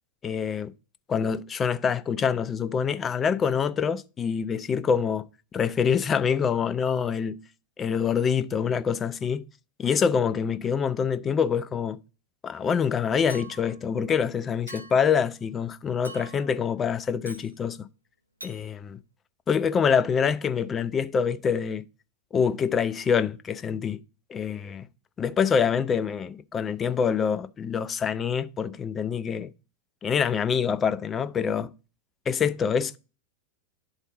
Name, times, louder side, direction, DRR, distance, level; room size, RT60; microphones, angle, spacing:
voice 1, 0.2-0.7 1.1-7.4 7.8-9.4 9.8-12.0 12.4-17.9 18.4-19.0 19.5-21.8 22.3-24.0 24.3-24.9 25.2-29.5 30.0-31.7 32.3-33.0, left 6 dB, 20° left, 0.4 m, -25 dB
Chink clink, 13.3-13.8 14.7-15.1 16.0-16.5 17.2-17.5 18.4-18.6, right 2 dB, 85° right, 0.6 m, -44 dB
11.0 x 4.0 x 2.6 m
figure-of-eight pair, 90°, 0 cm